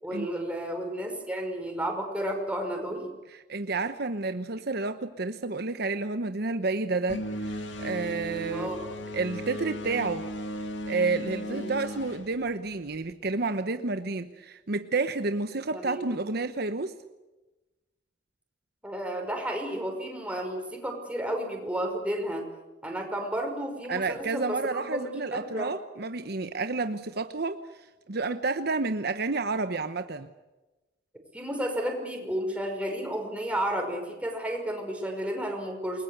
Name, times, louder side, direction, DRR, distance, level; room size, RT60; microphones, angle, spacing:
voice 1, 0.0-3.1 8.5-8.9 11.4-11.7 15.7-16.1 18.8-22.4 22.8-25.7 31.3-36.0, equal, 5° right, 2 dB, 5.5 m, -32 dB
voice 2, 3.3-8.7 9.1-10.3 10.9-16.9 23.9-30.3, right 3 dB, 60° right, 9 dB, 1.0 m, -30 dB
sound 1, 7.1-13.1, equal, 80° left, 2.3 m, -36 dB
28.5 x 20.5 x 8.1 m, 1.1 s
head